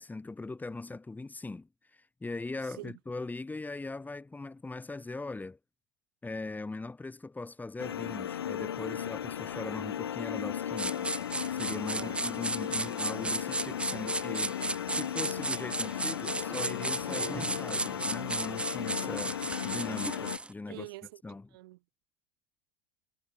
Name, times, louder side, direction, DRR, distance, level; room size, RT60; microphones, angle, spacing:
voice 1, 0.0-5.6 6.2-11.1 11.5-14.6 14.9-19.4 19.6-20.9 21.2-21.6, left 3 dB, 15° left, 2.2 m, -40 dB
sound 1, 7.8-20.4, left 9 dB, 85° left, 1.6 m, -36 dB
sound 2, 10.8-20.5, right 2 dB, 10° right, 0.8 m, -35 dB
voice 2, 11.9-12.2 13.9-14.0 15.3-15.5 20.7-21.1 21.5-21.8, right 20 dB, 70° right, 3.6 m, -44 dB
hypercardioid pair, 80°, 13 cm